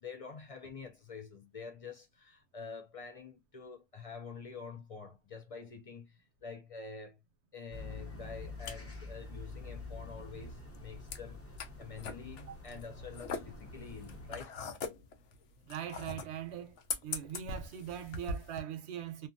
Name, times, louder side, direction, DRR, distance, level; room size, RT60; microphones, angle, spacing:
voice 1, 0.0-7.2 7.5-14.6, left 5 dB, 65° left, 0.3 m, -47 dB
sound 1, 7.7-14.4, left 3 dB, 15° left, 0.6 m, -47 dB
sound 2, 8.2-18.6, left 4 dB, 85° left, 0.9 m, -43 dB
voice 2, 15.6-16.8 17.0-19.3, right 10 dB, 70° right, 0.8 m, -41 dB
2.7 x 2.3 x 2.5 m
omnidirectional pair, 1.2 m